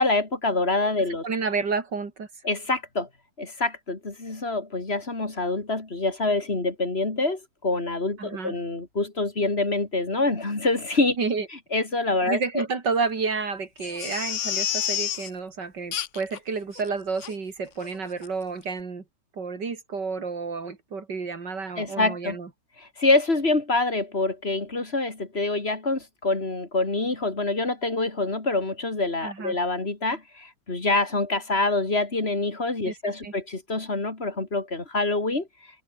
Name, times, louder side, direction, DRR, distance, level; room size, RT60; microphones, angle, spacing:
voice 1, 0.0-1.3 2.4-3.1 3.4-11.2 11.7-12.7 21.8-22.4 22.8-35.5, left 2 dB, 35° left, 3.4 m, -26 dB
voice 2, 1.2-2.3 8.2-8.5 11.2-11.5 12.3-19.0 19.4-22.5 29.2-29.6 32.9-33.0 33.2-33.3, right 4 dB, 75° right, 3.5 m, -30 dB
Crying sobbing, 13.8-15.3 15.9-16.4 16.8-16.9 17.2-17.3 17.8-18.0 18.2-18.3, left 10 dB, 55° left, 1.0 m, -29 dB
omnidirectional pair, 1.9 m